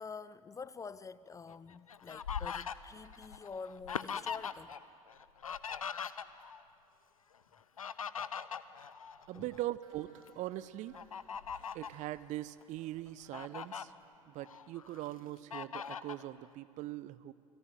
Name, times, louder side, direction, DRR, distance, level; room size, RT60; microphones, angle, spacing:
voice 1, 0.0-4.8 9.3-9.5 11.4-11.5, left 5 dB, 20° left, 0.6 m, -47 dB
Fowl, 1.5-4.8 5.1-6.6 7.5-9.6 10.1-10.3 10.9-12.0 12.6-12.7 13.1-13.8 14.4-15.1 15.5-16.2, left 7 dB, 80° left, 0.7 m, -41 dB
voice 2, 9.3-11.0 11.7-13.9 14.3-17.3, right 15 dB, 45° right, 0.8 m, -41 dB
sound 1, 9.8-14.1 14.5-14.6 15.0-15.1 15.3-15.4 15.7-15.8, right 3 dB, 70° right, 7.2 m, -66 dB
29.0 x 21.0 x 9.1 m
figure-of-eight pair, 70°, 18 cm